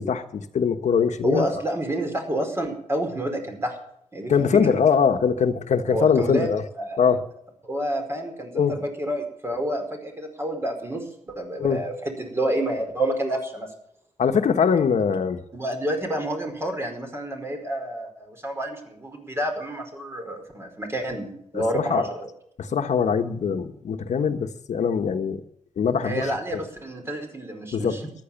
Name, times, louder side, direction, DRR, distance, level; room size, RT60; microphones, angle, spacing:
voice 1, 0.0-1.5 4.3-6.6 7.0-7.2 8.5-8.8 11.6-11.8 14.2-15.4 21.5-22.1 22.6-25.4 25.8-26.6 27.7-27.9, left 6 dB, 80° left, 7 dB, 1.3 m, -22 dB
voice 2, 1.2-3.8 4.1-4.7 5.9-6.5 6.8-7.0 7.6-13.7 15.5-22.3 26.0-28.1, right 1 dB, 20° right, 4 dB, 4.8 m, -29 dB
14.5 x 11.5 x 7.1 m, 0.73 s
wide cardioid pair, 115°, 12 cm